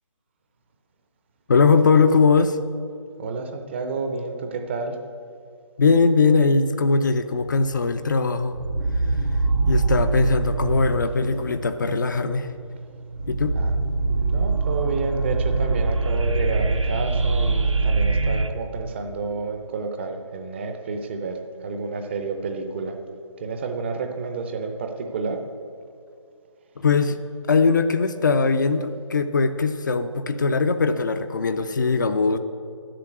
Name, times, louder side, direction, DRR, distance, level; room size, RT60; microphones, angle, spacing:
voice 1, 1.5-2.6 5.8-8.6 9.7-12.5 13.3-13.5 26.8-27.2 27.5-32.4, left 4 dB, 40° left, 9 dB, 0.5 m, -20 dB
voice 2, 3.2-5.0 13.5-13.8 14.1-23.0 23.4-25.5, right 4 dB, 25° right, 6 dB, 0.6 m, -30 dB
sound 1, 7.3-8.1 8.5-18.5, right 3 dB, 75° right, 1.0 m, -24 dB
11.0 x 7.6 x 8.0 m, 2.4 s
figure-of-eight pair, 150°, 16 cm